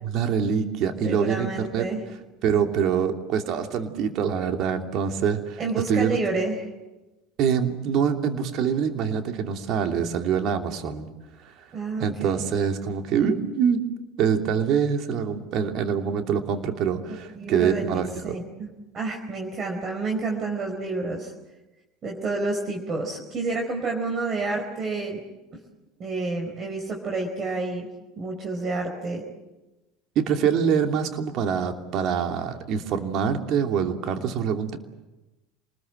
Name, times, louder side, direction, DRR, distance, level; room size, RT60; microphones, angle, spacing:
voice 1, 0.0-1.9 2.4-5.6 5.9-6.2 7.4-11.1 11.4-11.5 12.0-13.8 14.2-18.4 30.1-34.8, right 7 dB, 55° right, 5 dB, 2.8 m, -25 dB
voice 2, 1.0-2.0 5.6-6.6 11.7-12.4 17.1-18.7 18.9-21.3 22.0-25.2 26.0-27.9 28.2-29.2, right 3 dB, 40° right, 2 dB, 4.4 m, -29 dB
27.5 x 20.5 x 7.8 m, 1.1 s
hypercardioid pair, 80°, 0 cm